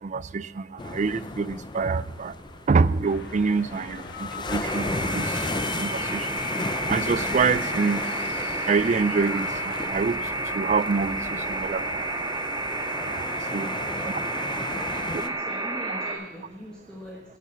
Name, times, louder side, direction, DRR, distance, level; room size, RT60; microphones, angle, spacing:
voice 1, 0.0-2.3 2.7-5.3 5.7-6.3 6.9-8.0 8.7-10.2 10.5-12.0 13.1-13.3 13.5-13.7 14.0-14.2 15.1-15.2, right 4 dB, 35° right, 17 dB, 0.3 m, -26 dB
sound 1, 0.8-15.3, left 2 dB, 20° left, 0.5 m, -35 dB
sound 2, 3.0-9.9, left 5 dB, 55° left, 1.4 m, -40 dB
sound 3, 4.6-16.1, right 1 dB, 20° right, 1.9 m, -31 dB
voice 2, 13.5-14.1 14.4-17.4, left 1 dB, 5° left, -4 dB, 1.5 m, -42 dB
17.0 x 7.0 x 7.3 m, 1.0 s
head